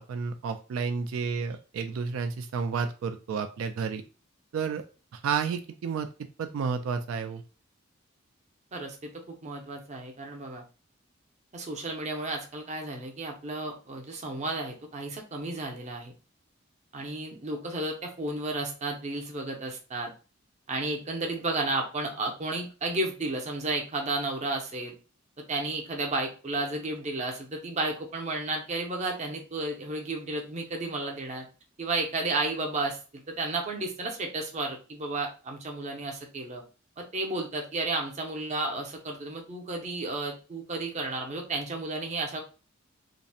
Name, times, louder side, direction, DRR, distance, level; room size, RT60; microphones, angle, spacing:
voice 1, 0.0-4.0 4.5-4.9 5.1-6.1 6.4-7.4, right 5 dB, 85° right, 8 dB, 0.3 m, -31 dB
voice 2, 8.7-10.6 11.5-16.1 16.9-20.1 20.7-25.0 25.5-31.5 31.8-33.0 33.3-36.6 37.0-42.4, right 2 dB, 35° right, 2 dB, 0.5 m, -32 dB
2.5 x 2.0 x 2.6 m, 0.34 s
head